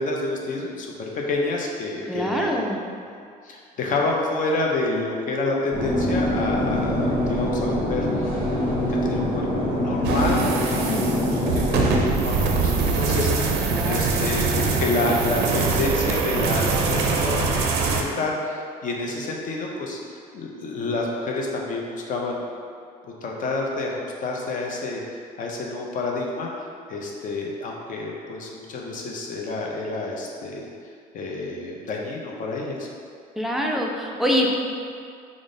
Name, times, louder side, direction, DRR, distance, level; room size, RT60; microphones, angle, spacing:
voice 1, 0.0-2.7 3.0-8.3 9.1-20.0 20.3-22.5 23.2-25.0 25.4-26.5 26.9-30.6 31.1-32.9, left 2 dB, 50° left, -1 dB, 0.6 m, -28 dB
voice 2, 2.1-2.8 10.9-11.3 13.7-14.2 33.4-34.5, equal, ahead, -1 dB, 0.3 m, -25 dB
sound 1, 5.7-12.1, left 1 dB, 25° left, 1.2 m, -24 dB
sound 2, 10.0-18.0, right 4 dB, 80° right, 0.4 m, -23 dB
3.6 x 2.0 x 3.7 m, 2.3 s
cardioid pair, 110°, 17 cm